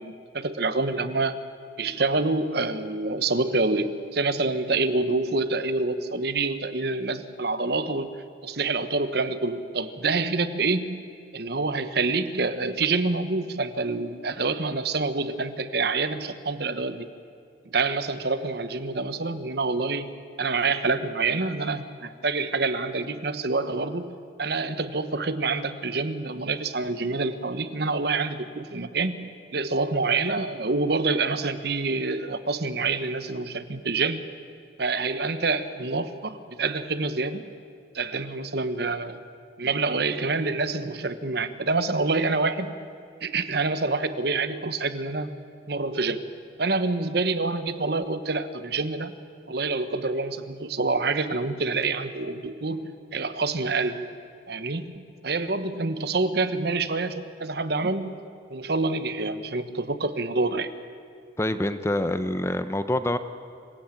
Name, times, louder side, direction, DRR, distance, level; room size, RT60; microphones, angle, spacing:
voice 1, 0.0-1.4 1.8-8.1 8.4-11.0 11.3-17.1 17.7-20.1 20.4-34.3 34.8-37.5 37.9-39.2 39.6-42.7 43.2-45.4 45.7-46.3 46.6-49.1 49.5-54.1 54.5-58.2 58.5-60.7, right 3 dB, 60° right, 12 dB, 1.1 m, -27 dB
voice 2, 61.4-63.2, left 1 dB, 15° left, 11 dB, 0.7 m, -26 dB
26.0 x 16.5 x 9.0 m, 2.5 s
head